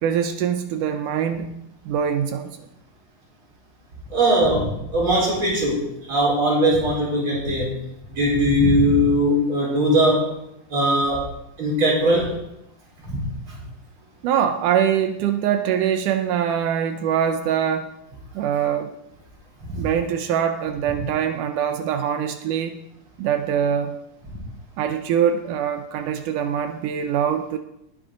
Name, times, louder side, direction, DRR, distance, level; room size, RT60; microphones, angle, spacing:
voice 1, 0.0-1.5 1.9-2.6 14.2-17.9 18.4-18.9 19.8-22.8 23.2-24.0 24.8-27.6, right 8 dB, 80° right, 7 dB, 2.3 m, -23 dB
voice 2, 4.1-7.8 8.1-10.3 10.7-11.3 11.6-12.4 13.0-13.6 19.6-19.8, equal, 40° right, -3 dB, 5.2 m, -20 dB
19.5 x 9.7 x 3.9 m, 0.81 s
omnidirectional pair, 3.6 m